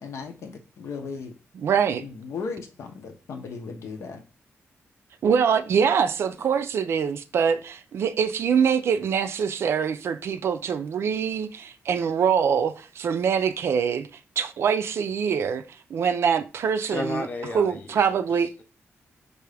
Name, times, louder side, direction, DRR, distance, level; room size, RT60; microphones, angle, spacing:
voice 1, 0.0-1.3 2.0-4.2, left 5 dB, 90° left, 0.8 m, -36 dB
voice 2, 1.5-2.0 5.2-14.1 14.4-15.6 15.9-17.3 17.5-18.5, right 7 dB, 60° right, 0.4 m, -24 dB
voice 3, 16.9-18.6, left 3 dB, 40° left, 0.7 m, -34 dB
4.7 x 2.5 x 3.3 m
wide cardioid pair, 180°, 5 cm